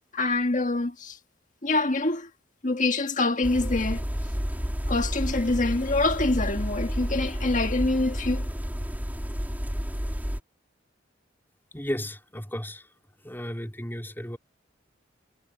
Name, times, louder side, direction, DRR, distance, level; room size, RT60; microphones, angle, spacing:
voice 1, 0.1-1.2 1.6-2.3 2.6-4.1 4.9-8.5, left 2 dB, 45° left, 1.7 m, -25 dB
sound 1, 3.4-10.4, equal, 10° right, 2.8 m, -30 dB
voice 2, 11.7-12.9 13.2-14.4, equal, 10° left, 3.8 m, -34 dB
head